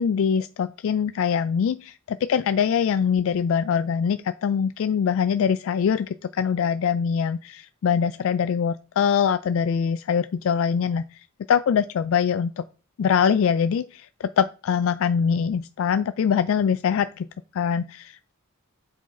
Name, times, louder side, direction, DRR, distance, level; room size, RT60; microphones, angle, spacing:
voice 1, 0.0-11.2 11.5-12.6 13.0-17.3 17.5-18.3, left 7 dB, 65° left, 12 dB, 0.3 m, -23 dB
8.0 x 4.8 x 4.2 m, 0.35 s
head